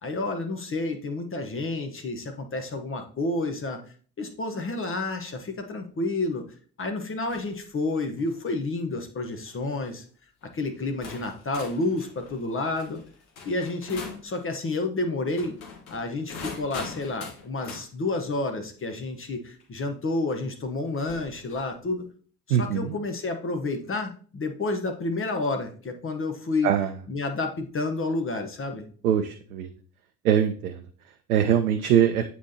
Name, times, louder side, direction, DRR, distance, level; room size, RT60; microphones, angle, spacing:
voice 1, 0.0-3.8 4.2-6.5 6.8-10.0 10.5-13.0 13.4-15.6 15.9-22.1 22.5-26.7 27.1-28.9, left 2 dB, 30° left, 6 dB, 1.0 m, -30 dB
sound 1, 7.3-7.6 8.1-8.4 9.3-9.6 10.4-10.5 11.0-14.3 15.3-17.9 19.6-19.7 21.0-21.7, left 4 dB, 70° left, 1.3 m, -42 dB
voice 2, 22.5-22.9 26.6-26.9 29.0-29.7 30.2-30.8 31.3-32.2, right 9 dB, 80° right, 7 dB, 0.6 m, -22 dB
8.4 x 4.1 x 2.8 m, 0.43 s
figure-of-eight pair, 50°, 44 cm